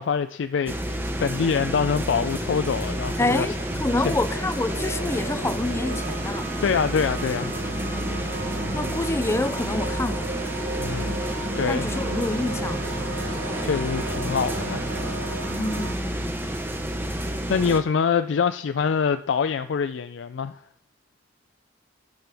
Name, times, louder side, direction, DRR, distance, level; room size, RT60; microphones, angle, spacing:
voice 1, 0.0-3.5 4.0-4.1 6.6-7.6 10.8-11.2 11.6-11.9 13.6-14.9 17.1-17.2 17.5-20.6, left 6 dB, 80° left, 0.4 m, -25 dB
sound 1, 0.7-17.8, right 1 dB, 10° right, 0.8 m, -30 dB
sound 2, 2.3-15.1, equal, 40° right, 3.3 m, -40 dB
voice 2, 3.2-6.5 8.7-10.3 11.7-12.8 15.5-16.4, left 2 dB, 15° left, 0.4 m, -27 dB
sound 3, 3.7-15.9, right 2 dB, 70° right, 0.8 m, -35 dB
12.0 x 7.7 x 3.5 m
head